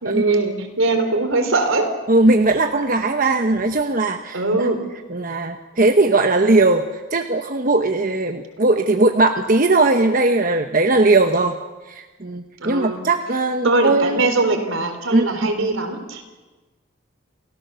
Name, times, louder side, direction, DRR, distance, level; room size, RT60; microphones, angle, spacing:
voice 1, 0.0-1.9 4.3-4.8 12.6-13.0 13.6-16.2, right 2 dB, 75° right, 6 dB, 3.8 m, -21 dB
voice 2, 2.1-4.7 5.1-11.6 11.8-14.2 15.1-15.4, right 2 dB, 40° right, 5 dB, 1.0 m, -18 dB
29.5 x 16.5 x 7.0 m, 1.2 s
head